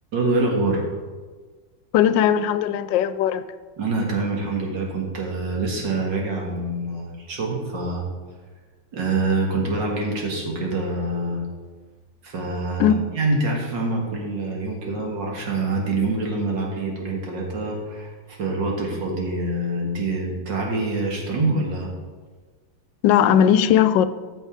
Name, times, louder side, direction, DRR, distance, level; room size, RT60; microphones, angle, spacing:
voice 1, 0.1-0.8 3.8-8.0 8.9-11.4 12.2-21.9, right 2 dB, 90° right, 2.4 m, -25 dB
voice 2, 1.9-3.4 12.8-13.0 23.0-24.1, left 9 dB, 90° left, 1.3 m, -18 dB
13.5 x 6.7 x 3.6 m
omnidirectional pair, 1.9 m